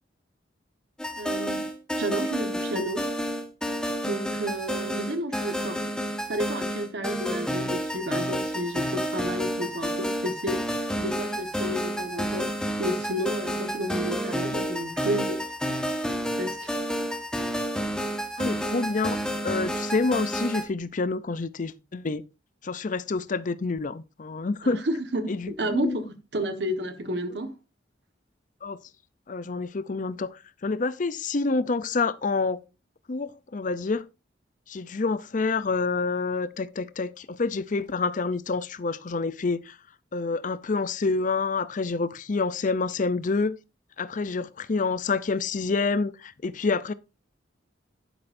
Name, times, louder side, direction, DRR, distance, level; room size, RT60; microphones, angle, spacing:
sound 1, 1.0-20.6, equal, 5° left, 1.4 m, -30 dB
voice 1, 1.2-1.6 1.9-3.1 4.0-5.8 6.3-15.4 16.4-16.7 24.6-26.1 26.3-27.5, right 1 dB, 65° right, 1.4 m, -31 dB
voice 2, 18.4-19.2 19.4-22.2 22.6-24.8 25.3-26.0 28.6-28.8 29.3-32.6 33.1-34.0 34.7-39.8 40.1-43.6 44.0-46.9, left 4 dB, 45° left, 0.6 m, -28 dB
11.0 x 10.5 x 2.6 m
head